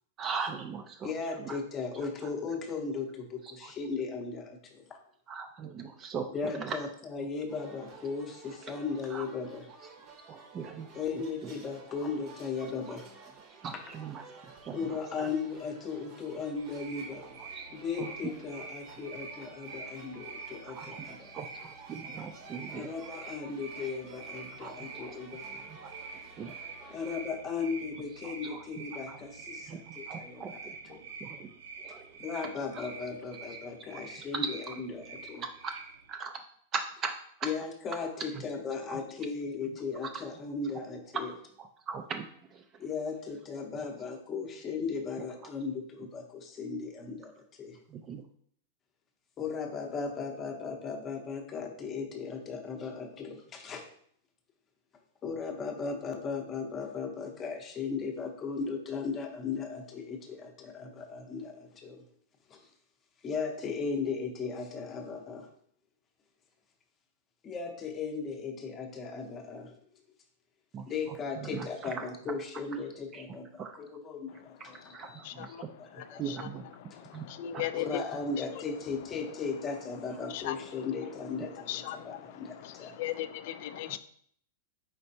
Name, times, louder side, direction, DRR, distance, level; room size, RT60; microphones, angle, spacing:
voice 1, 0.2-1.1 1.4-1.6 5.3-6.8 9.1-9.2 10.3-10.9 11.1-11.5 13.6-15.3 17.5-17.7 18.0-18.1 20.7-21.0 21.2-22.9 24.6-25.1 25.7-25.8 26.4-26.5 28.4-28.6 29.1-29.2 29.7-30.5 30.9-31.0 31.2-31.6 31.8-32.1 34.7-34.8 35.4-35.8 36.1-36.4 36.7-37.1 38.3-38.4 38.9-39.0 41.9-42.6 47.9-48.2 70.7-70.9 71.4-72.0 73.1-73.2 73.6-73.8 74.9-76.6 77.1-77.7 83.9-84.0, right 6 dB, 25° right, 6 dB, 0.3 m, -40 dB
voice 2, 1.0-5.0 6.3-9.7 10.9-13.1 14.7-17.4 17.7-21.3 22.7-25.7 26.9-31.0 32.2-35.4 37.4-41.3 42.8-47.8 49.4-53.8 55.2-62.0 62.5-62.7 63.2-65.5 67.4-69.7 70.9-75.5 75.8-76.2 77.7-83.0, left 5 dB, 20° left, 3 dB, 0.7 m, -37 dB
sound 1, 7.5-27.2, right 4 dB, 40° right, 0.8 m, -52 dB
sound 2, 16.5-36.2, right 4 dB, 80° right, 0.7 m, -46 dB
voice 3, 75.2-75.6 76.0-76.4 76.9-78.0 80.3-80.6 81.7-84.0, left 12 dB, 55° left, 12 dB, 0.3 m, -37 dB
4.5 x 4.2 x 2.7 m, 0.62 s
supercardioid pair, 145°, 0 cm